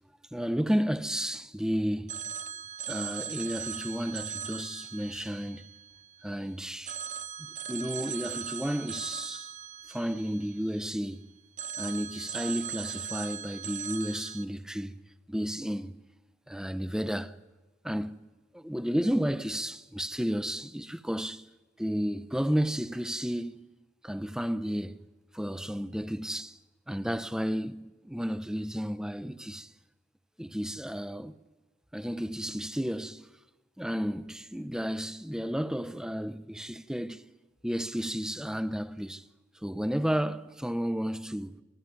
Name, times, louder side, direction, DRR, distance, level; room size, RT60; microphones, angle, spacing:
voice 1, 0.3-2.2 2.9-5.7 6.2-7.0 7.7-9.5 9.9-11.3 11.8-15.0 15.3-16.0 16.5-17.4 17.8-18.2 18.5-21.5 21.8-23.6 24.0-25.0 25.3-26.6 26.9-29.7 30.4-31.3 31.9-33.3 33.8-37.3 37.6-39.3 39.6-41.6, equal, 5° right, 0.7 m, -32 dB
Telephone, 2.1-6.4 6.9-11.1 11.6-14.4, right 8 dB, 45° right, 0.7 m, -39 dB
25.0 x 15.0 x 9.6 m
head